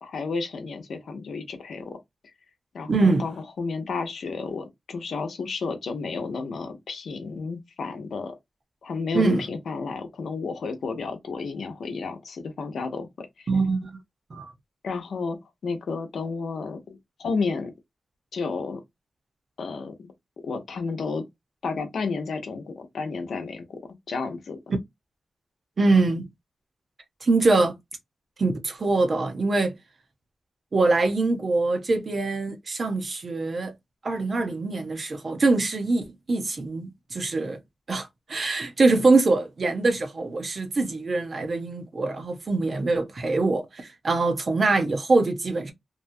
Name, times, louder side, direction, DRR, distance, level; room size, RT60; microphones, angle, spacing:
voice 1, 0.0-2.0 2.7-8.4 8.8-13.5 14.8-15.4 15.6-17.7 18.3-18.8 19.6-20.1 20.4-21.2 21.6-23.8 24.1-24.6, left 4 dB, 80° left, 0.8 m, -31 dB
voice 2, 2.9-3.3 9.1-9.4 13.5-13.9 14.3-14.4 25.8-26.3 27.2-27.7 28.4-29.8 30.7-33.7 34.0-37.6 37.9-45.7, right 3 dB, 45° right, 0.8 m, -23 dB
2.8 x 2.2 x 2.6 m
wide cardioid pair, 115°, 0 cm